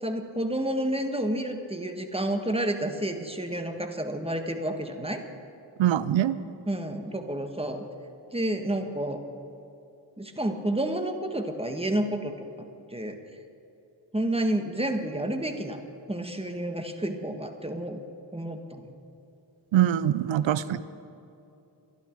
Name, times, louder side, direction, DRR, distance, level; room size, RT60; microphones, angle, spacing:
voice 1, 0.0-5.2 6.7-7.9 8.3-9.2 10.2-12.3 12.9-13.2 14.1-15.8 16.1-18.0 18.3-18.8, right 1 dB, 15° right, 6 dB, 1.6 m, -30 dB
voice 2, 5.8-6.4 19.7-20.8, right 11 dB, 85° right, 16 dB, 0.6 m, -23 dB
22.5 x 11.5 x 4.7 m, 2.8 s
cardioid pair, 60°, 45 cm